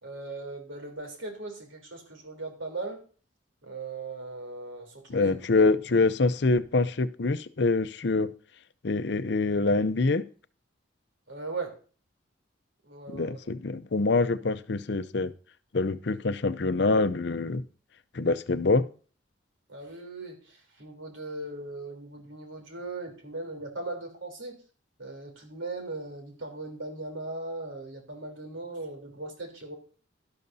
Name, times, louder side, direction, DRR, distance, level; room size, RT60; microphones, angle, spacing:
voice 1, 0.0-3.0 3.6-5.7 11.3-11.8 12.8-13.4 19.7-24.6 25.0-29.8, right 2 dB, 80° right, 3.5 m, -38 dB
voice 2, 5.1-8.3 8.8-10.2 13.1-15.3 15.7-17.6 18.1-18.9, left 3 dB, 60° left, 0.6 m, -25 dB
12.0 x 12.0 x 2.7 m
head